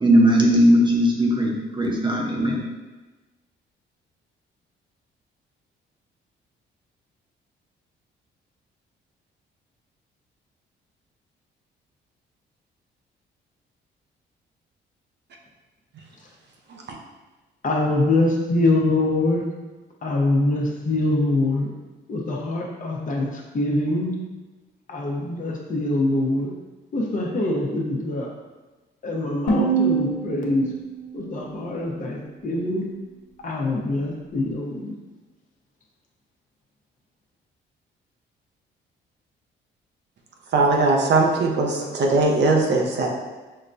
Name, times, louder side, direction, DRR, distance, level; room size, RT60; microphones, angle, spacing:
voice 1, 0.0-2.6, equal, 25° right, -1 dB, 0.9 m, -18 dB
voice 2, 17.6-19.4 20.0-21.7 22.1-24.1 24.9-26.5 26.9-28.3 29.0-30.7 31.1-32.8 33.4-34.9, left 2 dB, 40° left, -1 dB, 0.8 m, -24 dB
sound 1, 29.5-32.5, right 4 dB, 65° left, 1.0 m, -26 dB
voice 3, 40.5-43.1, right 3 dB, 60° right, 1 dB, 0.7 m, -20 dB
6.3 x 2.1 x 2.6 m, 1.2 s
cardioid pair, 90°, 20 cm